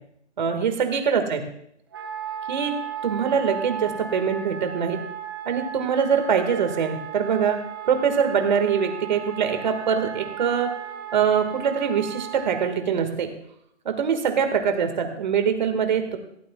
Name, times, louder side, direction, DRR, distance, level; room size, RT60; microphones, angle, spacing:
voice 1, 0.4-1.5 2.5-2.7 3.0-5.0 5.5-10.7 11.1-13.3 13.9-16.2, right 7 dB, 40° right, 6 dB, 1.8 m, -23 dB
Wind instrument woodwind instrument, 1.9-12.7, right 8 dB, 20° right, 0.8 m, -36 dB
16.5 x 16.5 x 2.3 m, 0.72 s
hypercardioid pair, 165°, 35 cm